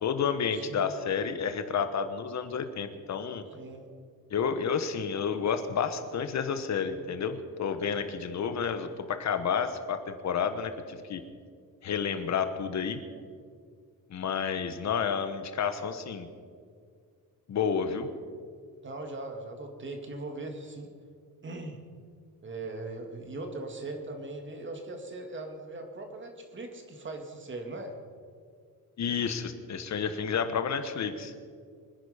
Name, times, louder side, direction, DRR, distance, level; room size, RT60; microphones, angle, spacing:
voice 1, 0.0-3.4 4.3-11.2 11.8-13.0 14.1-16.3 17.5-18.1 29.0-31.3, left 6 dB, 50° left, 9 dB, 1.3 m, -30 dB
voice 2, 0.5-1.0 3.5-3.9 18.8-20.9 21.4-21.8 22.4-28.0, right 2 dB, 30° right, 4 dB, 2.2 m, -40 dB
24.5 x 10.5 x 5.1 m, 2.1 s
cardioid pair, 150°, 37 cm